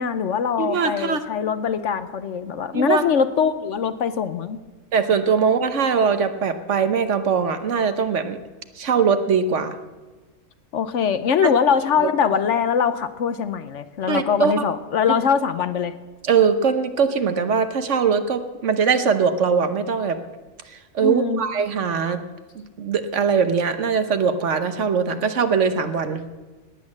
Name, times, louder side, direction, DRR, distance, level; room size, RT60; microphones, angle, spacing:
voice 1, 0.0-4.6 10.7-15.9 21.0-21.4, left 7 dB, 65° left, 11 dB, 1.0 m, -22 dB
voice 2, 0.6-1.2 2.7-3.0 4.9-8.4 8.8-9.8 11.4-11.5 12.0-12.1 14.1-14.6 16.2-20.2 20.6-22.2 22.5-26.2, right 6 dB, 60° right, 9 dB, 1.2 m, -21 dB
18.5 x 8.6 x 7.3 m, 1.2 s
omnidirectional pair, 1.5 m